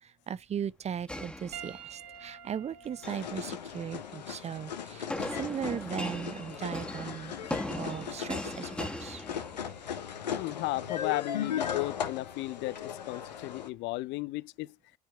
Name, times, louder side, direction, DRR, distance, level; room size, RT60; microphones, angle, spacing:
voice 1, 0.0-7.4 7.8-9.2, right 8 dB, 30° right, 0.5 m, -38 dB
sound 1, 1.1-2.2 2.8-3.3 5.1-9.9, left 1 dB, 5° left, 1.5 m, -39 dB
Piano, 1.5-6.2 7.1-7.3 9.3-9.4, right 8 dB, 80° right, 2.0 m, -50 dB
sound 2, 3.0-13.7, left 8 dB, 85° left, 1.0 m, -38 dB
voice 2, 10.3-14.8, left 19 dB, 55° left, 0.5 m, -35 dB
9.4 x 4.5 x 4.4 m
hypercardioid pair, 60°, 21 cm